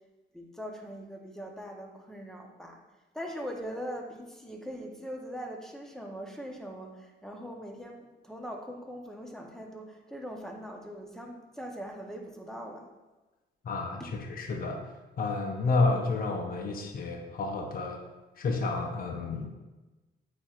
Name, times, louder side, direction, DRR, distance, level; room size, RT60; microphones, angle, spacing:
voice 1, 0.3-2.8 3.1-12.9 14.0-14.1, equal, ahead, 1 dB, 0.9 m, -41 dB
voice 2, 13.6-14.8 15.2-18.0 18.4-19.5, left 3 dB, 45° left, 2 dB, 0.8 m, -30 dB
8.6 x 4.4 x 2.5 m, 1.2 s
cardioid pair, 90°, 20 cm